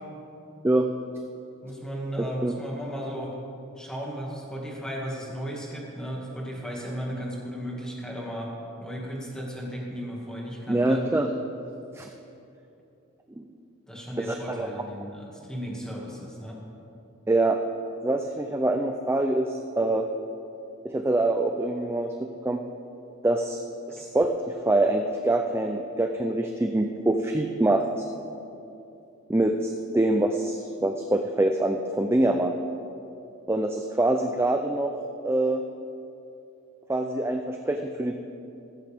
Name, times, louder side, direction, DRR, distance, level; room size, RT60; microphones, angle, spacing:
voice 1, 1.6-3.3 3.8-8.5 8.8-11.0 13.9-16.6 23.9-24.0, equal, 5° left, -3 dB, 2.1 m, -35 dB
voice 2, 2.2-2.5 10.7-11.3 11.9-12.1 13.4-13.5 14.2-14.8 17.3-17.6 18.0-20.0 20.8-22.6 23.2-23.6 23.9-28.1 29.3-32.5 33.5-34.9 35.2-35.6 36.9-38.1, right 2 dB, 10° right, 4 dB, 0.4 m, -25 dB
14.5 x 14.0 x 3.6 m, 2.8 s
head